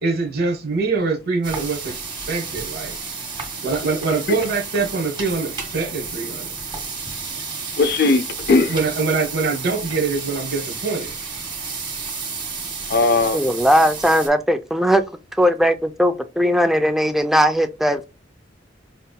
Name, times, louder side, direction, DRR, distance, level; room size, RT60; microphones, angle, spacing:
voice 1, 0.0-3.0 3.6-6.5 8.7-11.1, right 4 dB, 65° right, 1.0 m, -24 dB
sound 1, 1.4-14.3, right 4 dB, 25° right, 1.1 m, -31 dB
voice 2, 7.7-8.8 12.9-13.4, left 3 dB, 60° left, 0.5 m, -18 dB
voice 3, 13.3-15.0 15.4-18.0, equal, ahead, 0.4 m, -18 dB
5.4 x 2.6 x 2.2 m
head